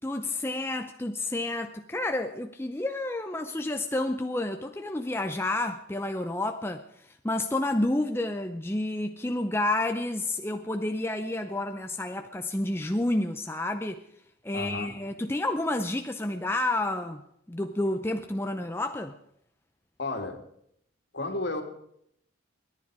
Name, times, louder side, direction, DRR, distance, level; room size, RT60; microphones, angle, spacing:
voice 1, 0.0-14.0 14.4-17.2 17.5-19.2, left 2 dB, 10° left, 6 dB, 0.5 m, -30 dB
voice 2, 14.5-14.9 20.0-20.4 21.1-21.6, left 2 dB, 55° left, 4 dB, 2.3 m, -32 dB
28.0 x 10.5 x 4.8 m, 0.73 s
head